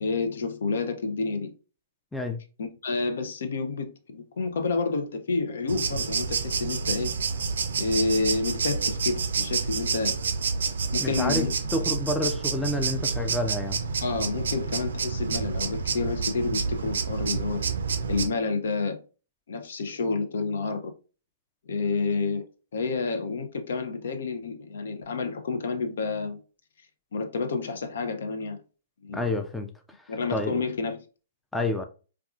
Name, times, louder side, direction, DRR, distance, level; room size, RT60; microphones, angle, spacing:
voice 1, 0.0-1.5 2.6-7.1 7.8-10.2 10.9-11.5 14.0-17.6 18.1-19.0 19.5-20.9 21.7-22.4 22.7-26.4 27.1-28.6 29.0-29.3 30.1-31.0, left 4 dB, 75° left, 0.5 m, -29 dB
sound 1, 5.7-18.3, right 5 dB, 80° right, 0.4 m, -29 dB
voice 2, 11.0-11.5 11.7-13.8 29.1-29.7 30.3-30.6 31.5-31.8, left 1 dB, 5° left, 0.3 m, -28 dB
3.6 x 2.3 x 2.4 m
hypercardioid pair, 130°, 0 cm